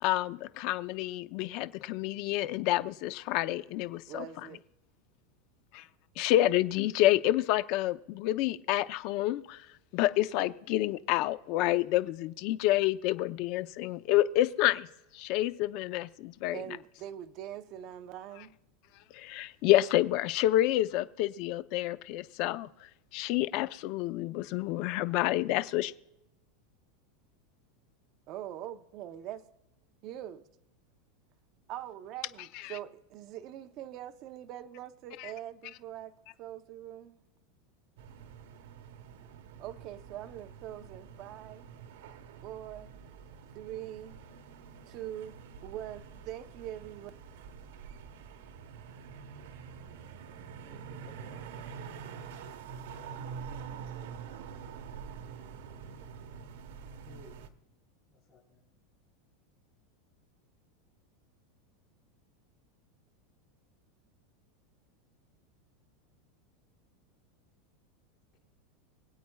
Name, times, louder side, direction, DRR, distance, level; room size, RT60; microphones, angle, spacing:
voice 1, 0.0-4.2 5.7-5.8 6.2-9.6 9.9-14.9 15.1-16.6 19.1-22.7 23.1-25.9 32.6-32.8 35.2-35.3, left 15 dB, 50° left, 0.6 m, -28 dB
voice 2, 4.1-4.6 16.5-18.5 28.3-29.4 30.0-30.4 31.7-36.1 36.4-37.2 39.6-41.7 42.4-42.9 43.5-44.2 44.9-45.4 45.6-47.1, right 12 dB, 40° right, 0.7 m, -43 dB
sound 1, 38.0-57.5, right 6 dB, 75° right, 1.1 m, -46 dB
voice 3, 51.0-51.5 57.0-57.5 58.1-58.7, left 2 dB, 20° left, 3.2 m, -56 dB
24.5 x 8.5 x 2.3 m
supercardioid pair, 155°, 0 cm